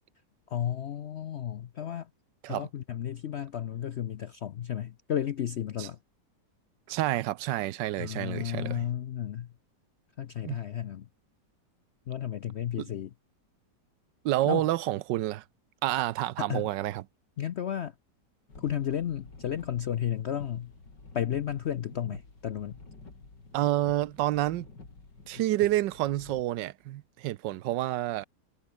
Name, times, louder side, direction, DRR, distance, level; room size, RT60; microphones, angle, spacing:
voice 1, 0.5-2.1 2.5-6.0 8.0-9.5 10.2-11.1 12.1-13.1 14.5-14.6 16.4-16.7 17.4-17.9 18.6-20.7 21.1-22.8, left 10 dB, 65° left, 0.6 m, -33 dB
voice 2, 6.9-8.8 10.4-10.6 12.8-12.9 14.2-15.4 15.8-17.0 23.5-24.7 25.3-28.2, right 15 dB, 90° right, 1.3 m, -29 dB
sound 1, 18.5-26.4, left 3 dB, 85° left, 5.2 m, -50 dB
omnidirectional pair, 1.9 m